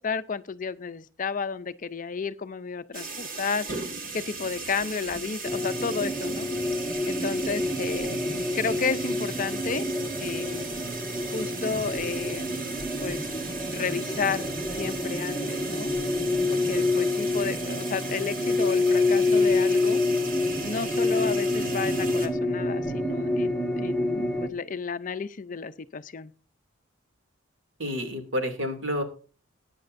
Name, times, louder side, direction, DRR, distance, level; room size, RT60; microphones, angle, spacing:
voice 1, 0.0-3.9 4.1-6.5 7.0-8.2 8.5-9.9 10.2-10.7 11.3-12.7 13.0-13.3 13.7-15.9 16.5-20.0 20.6-26.3, left 5 dB, 40° left, 11 dB, 0.5 m, -32 dB
sound 1, 2.9-22.3, right 4 dB, 45° right, 2.0 m, -37 dB
sound 2, 5.4-24.5, left 2 dB, ahead, 1.6 m, -27 dB
voice 2, 27.8-29.0, equal, 65° right, 5 dB, 2.6 m, -29 dB
20.0 x 9.7 x 2.6 m, 0.38 s
head